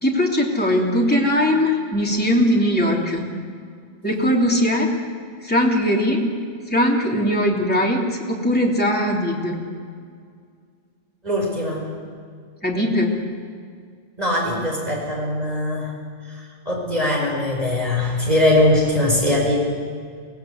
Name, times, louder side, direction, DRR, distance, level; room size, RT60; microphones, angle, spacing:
voice 1, 0.0-3.2 4.0-4.9 5.4-6.3 6.7-9.6 12.6-13.1, equal, 5° left, -2 dB, 3.1 m, -20 dB
voice 2, 11.2-11.9 14.2-15.9 16.3-19.7, left 1 dB, 30° right, -2 dB, 5.4 m, -21 dB
24.0 x 18.5 x 8.1 m, 2.1 s
omnidirectional pair, 1.4 m